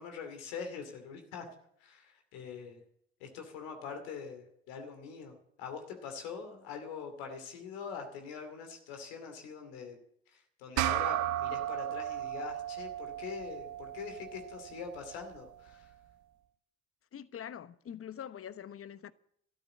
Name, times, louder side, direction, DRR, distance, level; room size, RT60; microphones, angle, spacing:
voice 1, 0.0-1.5 1.8-2.8 3.2-10.0 10.3-15.9, left 6 dB, 80° left, 2.6 m, -43 dB
sound 1, 10.8-15.5, right 13 dB, 65° right, 0.9 m, -35 dB
voice 2, 17.1-19.1, left 9 dB, 45° left, 1.0 m, -44 dB
13.0 x 11.0 x 8.6 m
hypercardioid pair, 50°, 32 cm